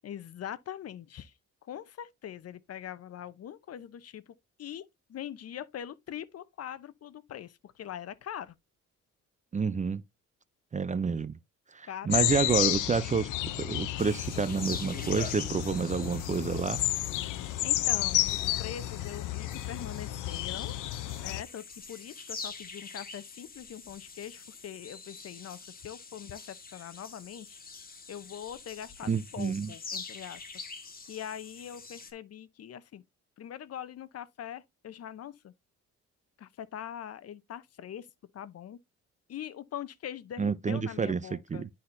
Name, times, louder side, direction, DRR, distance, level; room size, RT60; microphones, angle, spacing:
voice 1, 0.0-1.3 1.6-4.3 4.6-8.6 11.9-12.5 17.6-20.8 21.2-27.6 28.1-30.4 31.1-33.0 33.4-35.5 36.4-38.1 38.3-38.8 39.3-41.7, left 10 dB, 55° left, 0.7 m, -42 dB
voice 2, 9.5-10.0 10.7-11.4 11.7-16.8 29.1-29.7 40.4-41.7, right 5 dB, 25° right, 0.5 m, -29 dB
sound 1, 12.1-21.4, left 15 dB, 85° left, 0.6 m, -31 dB
Rey Ambiente Isla, 14.0-32.1, left 4 dB, 30° left, 1.6 m, -45 dB
11.5 x 4.3 x 2.6 m
cardioid pair, 90°, 30 cm